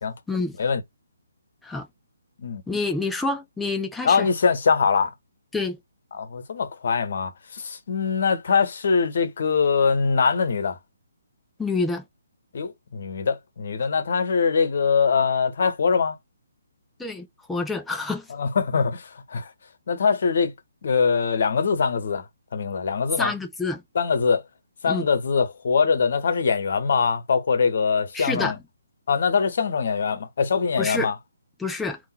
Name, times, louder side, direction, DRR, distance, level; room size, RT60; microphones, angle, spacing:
voice 1, 2.7-4.3 5.5-5.8 11.6-12.0 17.0-18.3 23.2-23.8 24.9-25.1 28.1-28.5 30.8-31.1 31.6-32.0, left 3 dB, 5° left, 0.6 m, -27 dB
voice 2, 4.0-5.1 6.1-10.8 12.5-16.2 18.3-19.5 19.9-20.5 20.8-22.2 22.5-23.3 23.9-24.4 24.8-28.6 29.1-31.2, left 5 dB, 50° left, 1.0 m, -23 dB
3.7 x 2.5 x 4.2 m
figure-of-eight pair, 135°, 0 cm